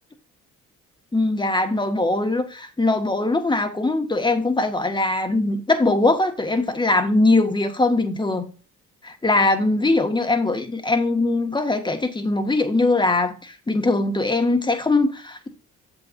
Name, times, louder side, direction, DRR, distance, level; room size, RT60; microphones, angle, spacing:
voice 1, 1.1-8.5 9.0-15.5, left 2 dB, 15° left, 1.7 m, -21 dB
8.2 x 7.5 x 2.7 m
cardioid pair, 90°, 30 cm